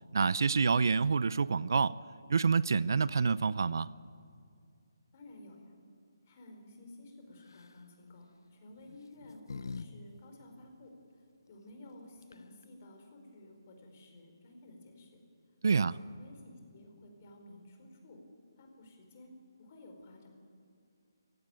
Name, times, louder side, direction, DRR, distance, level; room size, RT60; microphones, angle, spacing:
voice 1, 0.1-1.9 2.3-3.9 15.6-16.0, right 5 dB, 60° right, 19 dB, 0.6 m, -27 dB
voice 2, 5.1-5.7 6.2-15.2 15.9-18.2 18.6-19.3 19.6-20.3, left 1 dB, 30° left, 3 dB, 4.8 m, -53 dB
sound 1, 7.4-7.8 8.8-9.9 10.2-10.3 11.9-12.0 12.2-12.6, left 4 dB, 70° left, 1.1 m, -44 dB
29.5 x 16.5 x 9.2 m, 2.3 s
hypercardioid pair, 170°, 2 cm